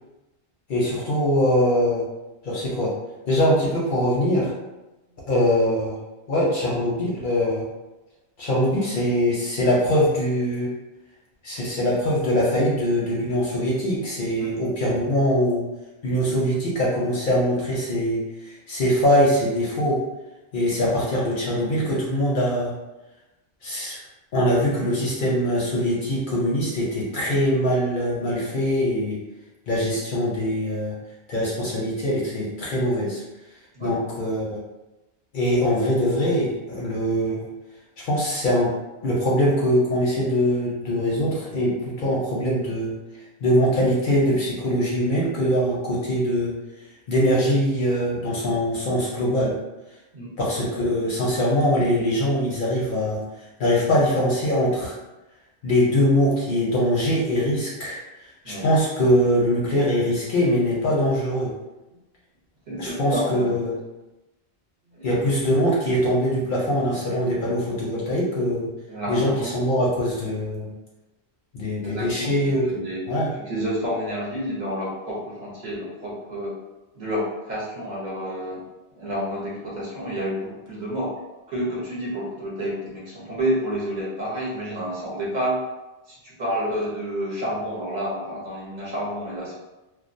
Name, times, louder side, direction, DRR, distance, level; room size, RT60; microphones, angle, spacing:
voice 1, 0.7-2.0 2.4-2.9 3.3-4.5 5.3-6.0 6.3-7.6 8.4-10.7 11.4-15.7 16.0-20.0 20.5-22.7 23.6-24.0 24.3-29.2 29.7-31.0 31.3-33.2 33.8-34.6 35.3-37.4 38.0-38.7 39.0-42.9 43.4-46.5 47.1-49.5 50.4-53.2 53.6-55.0 55.6-61.5 62.8-63.7 65.0-68.7 69.1-70.7 71.5-72.6 73.1-73.3, equal, 55° left, -5 dB, 0.6 m, -22 dB
voice 2, 62.7-63.5 64.9-65.2 68.9-69.5 71.8-73.0 73.3-76.6 76.9-78.6 78.9-81.1 81.5-85.6 86.1-89.6, equal, 45° right, -6 dB, 0.8 m, -29 dB
2.3 x 2.2 x 2.5 m, 1.0 s
omnidirectional pair, 1.1 m